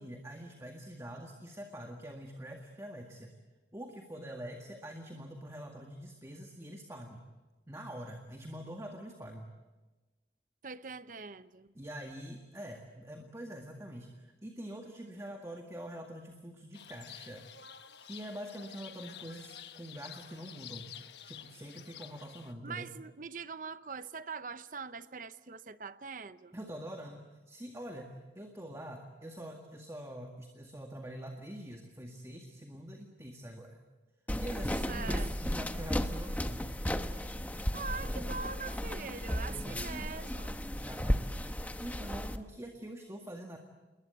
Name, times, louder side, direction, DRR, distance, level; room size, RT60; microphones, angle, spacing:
voice 1, 0.0-3.4 3.7-7.3 7.7-9.5 11.8-17.5 18.0-20.9 21.3-22.9 26.5-33.8 34.4-36.7 39.5-39.9 40.7-41.5 41.8-43.6, equal, 15° right, 1.9 m, -45 dB
voice 2, 10.6-11.7 22.6-26.5 34.9-35.6 37.7-40.6, right 5 dB, 50° right, 0.8 m, -43 dB
sound 1, 16.7-22.5, left 10 dB, 75° left, 1.2 m, -50 dB
sound 2, 34.3-42.4, equal, 10° left, 1.0 m, -34 dB
29.0 x 21.0 x 8.1 m
head